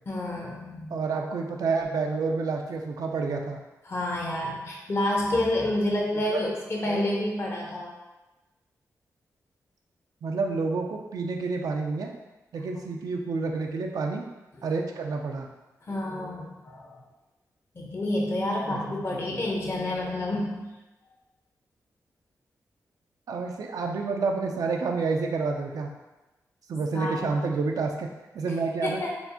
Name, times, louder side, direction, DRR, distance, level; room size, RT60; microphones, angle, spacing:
voice 1, 0.1-1.0 3.9-7.9 12.7-12.8 14.6-14.7 15.8-17.0 17.7-20.7 26.9-27.4 28.8-29.1, left 1 dB, 45° left, -1 dB, 0.8 m, -29 dB
voice 2, 0.9-3.6 6.3-6.4 6.9-7.0 10.2-12.1 12.5-14.3 14.6-15.5 18.7-18.8 19.3-19.4 23.3-25.9 26.7-28.1 28.3-29.0, right 4 dB, 75° right, 2 dB, 0.4 m, -29 dB
4.3 x 2.1 x 2.7 m, 1.1 s
cardioid pair, 75°, 6 cm